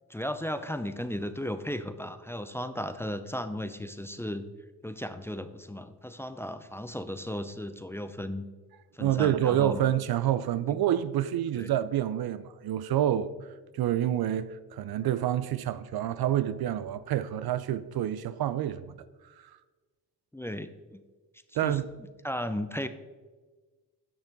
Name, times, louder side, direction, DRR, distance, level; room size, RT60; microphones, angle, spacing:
voice 1, 0.1-4.4 4.8-8.5 8.9-9.8 11.5-11.7 20.3-21.0 21.6-21.8 22.2-22.9, left 1 dB, 5° left, 0.6 m, -35 dB
voice 2, 9.0-13.3 13.7-19.0 19.2-19.3 21.5-21.9, right 11 dB, 60° right, 0.5 m, -28 dB
10.5 x 6.0 x 4.0 m
supercardioid pair, 55°, 42 cm